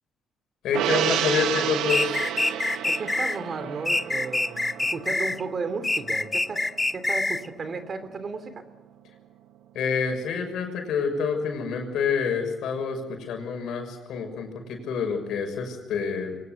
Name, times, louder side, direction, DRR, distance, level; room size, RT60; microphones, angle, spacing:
voice 1, 0.6-2.2 9.7-16.4, left 6 dB, 80° left, 5 dB, 6.3 m, -28 dB
Gong, 0.7-7.4 7.7-7.8, right 10 dB, 90° right, 1.4 m, -31 dB
sound 1, 1.9-3.4 3.9-5.4 5.8-7.5, left 2 dB, 15° left, 0.9 m, -26 dB
voice 2, 2.8-6.6 6.9-8.6, right 4 dB, 45° right, 11 dB, 3.3 m, -34 dB
23.5 x 19.5 x 8.0 m, 1.1 s
cardioid pair, 90°, 0 cm